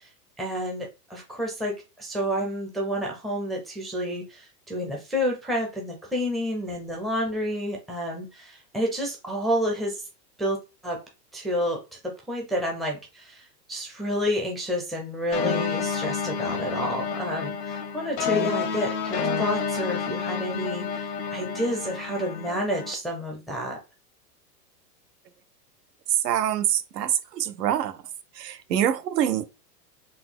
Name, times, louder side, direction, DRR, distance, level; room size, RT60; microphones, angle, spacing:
voice 1, 0.4-10.0 10.4-10.6 10.8-11.0 11.3-11.8 12.3-13.4 13.7-23.8, equal, ahead, 0.4 m, -29 dB
sound 1, 15.3-22.9, left 6 dB, 90° left, 1.0 m, -29 dB
voice 2, 26.2-27.9 28.4-29.4, right 10 dB, 85° right, 0.7 m, -25 dB
4.0 x 2.2 x 3.7 m
hypercardioid pair, 130°, 47 cm